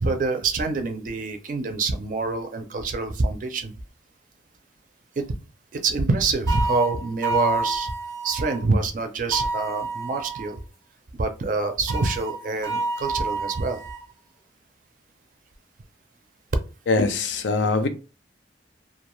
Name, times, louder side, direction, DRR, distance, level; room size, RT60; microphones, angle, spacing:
voice 1, 0.0-3.7 5.2-5.3 5.7-7.9 8.2-10.6 11.1-13.8, right 3 dB, 45° right, 0.4 m, -26 dB
sound 1, 6.5-8.6 9.3-10.6 11.9-14.1, right 3 dB, 15° left, 0.5 m, -29 dB
voice 2, 16.9-17.9, left 3 dB, 80° left, 0.5 m, -22 dB
2.3 x 2.2 x 3.0 m
head